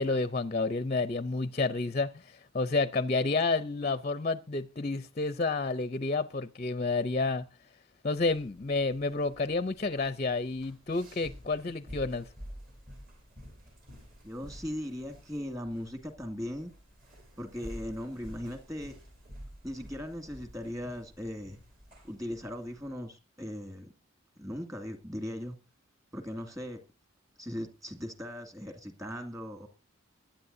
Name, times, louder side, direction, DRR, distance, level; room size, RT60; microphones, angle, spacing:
voice 1, 0.0-7.4 8.0-12.3, left 3 dB, 30° left, 0.5 m, -30 dB
sound 1, 8.2-22.9, equal, 45° right, 6.5 m, -50 dB
voice 2, 14.2-16.7 17.4-18.9 19.6-21.6 22.0-23.9 24.4-25.5 26.1-26.8 27.4-29.7, equal, 15° right, 2.2 m, -38 dB
22.5 x 10.5 x 2.7 m
head